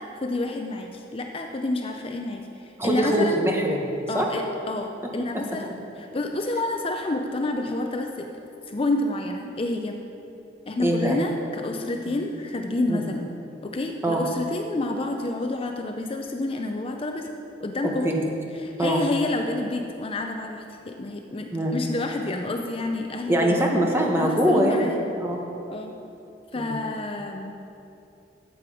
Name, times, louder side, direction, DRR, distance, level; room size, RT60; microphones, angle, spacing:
voice 1, 0.0-3.4 4.1-8.3 8.7-10.0 10.7-13.3 13.7-17.3 17.6-18.1 18.6-23.7 24.2-25.0 25.7-26.0 26.5-27.5, left 2 dB, 30° left, 3 dB, 0.5 m, -29 dB
voice 2, 2.8-4.3 10.8-11.2 12.1-12.2 12.9-13.0 14.0-14.2 18.0-18.1 18.8-19.0 21.5-21.7 23.3-24.9 25.2-25.4 26.5-26.8, right 1 dB, 15° right, 0 dB, 1.2 m, -23 dB
12.5 x 7.7 x 4.9 m, 2.8 s
head